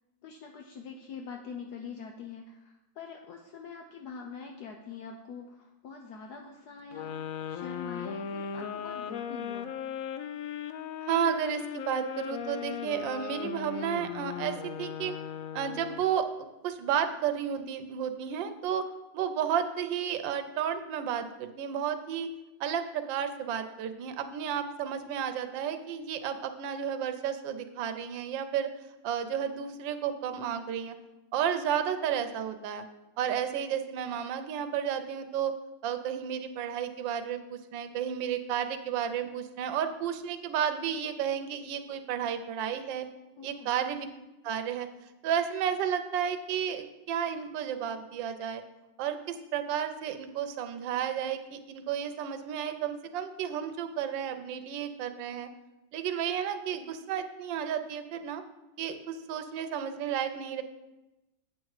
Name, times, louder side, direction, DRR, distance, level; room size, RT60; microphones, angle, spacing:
voice 1, 0.2-9.7 43.3-43.7, left 5 dB, 65° left, 2 dB, 1.1 m, -44 dB
sound 1, 6.9-16.1, left 8 dB, 90° left, 0.7 m, -38 dB
voice 2, 11.0-15.1 15.5-18.8 19.1-22.3 22.6-28.7 29.0-30.9 31.3-32.8 33.2-35.5 35.8-43.1 43.4-44.1 44.4-44.9 45.2-48.6 49.0-55.5 55.9-58.4 58.8-60.6, right 8 dB, 80° right, 8 dB, 1.4 m, -32 dB
8.5 x 6.5 x 4.7 m, 1.0 s
omnidirectional pair, 2.0 m